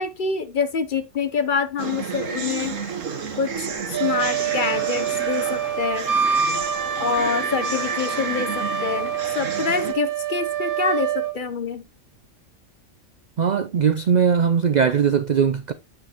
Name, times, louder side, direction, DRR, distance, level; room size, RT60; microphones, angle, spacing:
voice 1, 0.0-2.7 3.4-3.7 4.0-6.1 7.0-11.8, left 5 dB, 50° left, 0.7 m, -26 dB
sound 1, 1.8-9.9, right 6 dB, 85° right, 1.6 m, -32 dB
sound 2, 3.5-7.8, left 3 dB, 70° left, 1.8 m, -44 dB
Wind instrument woodwind instrument, 3.9-11.4, right 7 dB, 50° right, 0.9 m, -26 dB
voice 2, 13.4-15.7, right 7 dB, 65° right, 0.4 m, -20 dB
8.8 x 5.9 x 2.9 m
omnidirectional pair, 1.3 m